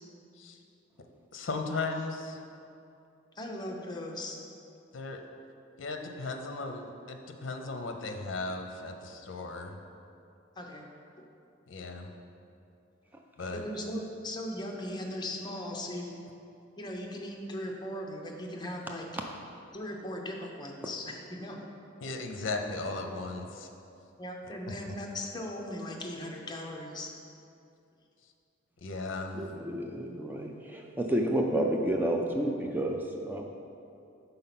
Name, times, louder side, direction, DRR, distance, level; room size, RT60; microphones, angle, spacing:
voice 1, 1.3-2.4 4.9-5.2 5.8-9.8 11.7-12.1 13.4-13.6 22.0-23.7 28.8-29.4, left 3 dB, 70° left, 4 dB, 0.6 m, -36 dB
voice 2, 3.4-4.4 10.6-10.9 13.5-16.1 16.8-19.1 19.7-21.7 24.2-27.1, left 1 dB, 20° left, 0 dB, 0.6 m, -38 dB
voice 3, 29.3-33.4, right 1 dB, 10° right, 1 dB, 0.3 m, -30 dB
5.4 x 4.0 x 5.8 m, 2.6 s
head